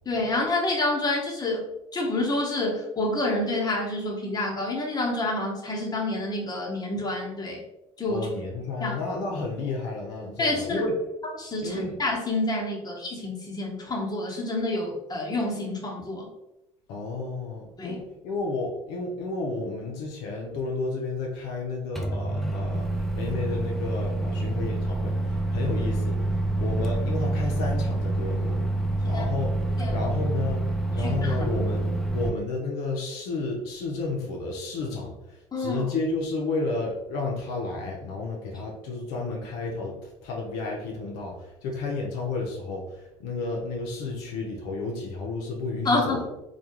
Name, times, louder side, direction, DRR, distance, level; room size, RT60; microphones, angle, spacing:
voice 1, 0.1-1.6 1.9-7.6 8.0-8.3 8.8-8.9 10.4-10.8 11.4-16.3 17.8-18.0 29.1-29.2 29.8-30.1 30.9-31.5 35.5-35.8 45.8-46.3, left 2 dB, 25° left, -2 dB, 0.9 m, -28 dB
voice 2, 8.1-11.0 11.6-12.0 16.9-26.2 26.6-28.6 29.0-29.5 29.9-30.6 30.9-46.2, left 3 dB, 75° left, -1 dB, 0.5 m, -32 dB
Microwave oven, 22.0-32.3, right 2 dB, ahead, 0.4 m, -27 dB
2.3 x 2.2 x 2.9 m, 0.91 s
hypercardioid pair, 65°, 16 cm